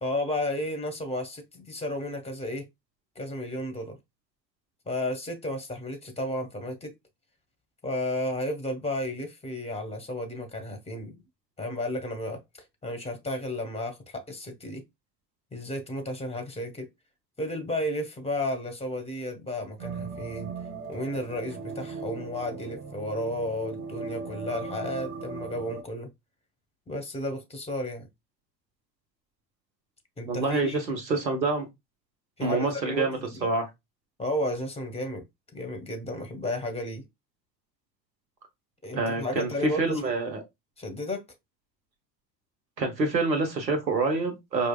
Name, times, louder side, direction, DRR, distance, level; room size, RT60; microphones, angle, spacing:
voice 1, 0.0-2.7 3.1-4.0 4.9-6.9 7.8-11.2 11.6-12.4 12.8-14.8 15.5-16.9 17.4-20.5 20.9-26.1 26.9-28.1 30.2-30.8 32.4-33.5 34.2-35.2 35.5-37.0 38.8-40.1 40.8-41.2, left 1 dB, 10° left, 1.2 m, -33 dB
sound 1, 19.8-25.8, right 4 dB, 60° right, 1.9 m, -38 dB
voice 2, 30.3-31.7 32.4-33.7 39.0-40.4 42.8-44.7, right 3 dB, 85° right, 1.1 m, -27 dB
4.5 x 2.7 x 2.3 m
figure-of-eight pair, 60°, 49 cm